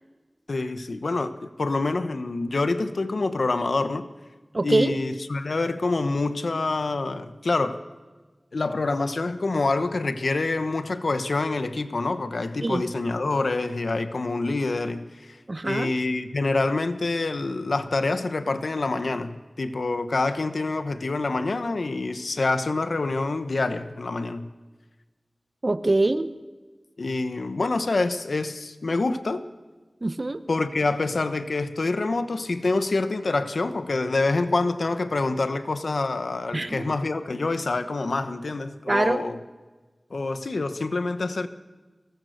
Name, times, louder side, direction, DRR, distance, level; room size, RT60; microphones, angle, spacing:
voice 1, 0.5-4.1 4.6-7.8 8.5-15.4 15.6-24.5 27.0-29.4 30.5-39.4 40.1-41.5, left 3 dB, 90° left, 9 dB, 1.1 m, -26 dB
voice 2, 4.5-4.9 12.6-12.8 15.5-15.9 25.6-26.3 30.0-30.4 36.5-36.8 38.9-39.2, right 2 dB, 45° right, 11 dB, 1.0 m, -23 dB
23.5 x 19.0 x 6.6 m, 1.3 s
wide cardioid pair, 65°, 0 cm